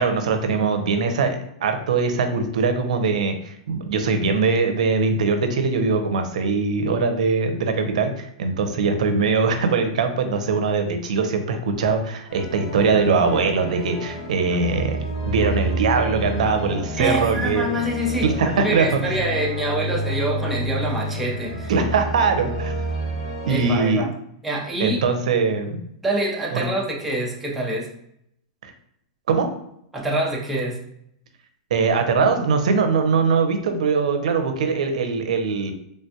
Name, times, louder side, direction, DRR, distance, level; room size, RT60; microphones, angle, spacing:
voice 1, 0.0-15.0 15.3-17.7 18.2-19.0 21.7-22.7 23.4-24.0 24.8-25.8 26.5-26.6 28.6-28.7 29.3-29.5 31.7-35.7, right 4 dB, 80° right, 7 dB, 0.6 m, -21 dB
sound 1, 12.3-23.8, right 1 dB, 65° left, 1.3 m, -29 dB
voice 2, 17.0-21.7 23.5-24.1 24.4-25.0 26.0-27.9 29.9-30.8, right 1 dB, 5° right, -3 dB, 0.5 m, -26 dB
3.3 x 2.2 x 2.7 m, 0.74 s
supercardioid pair, 155°, 4 cm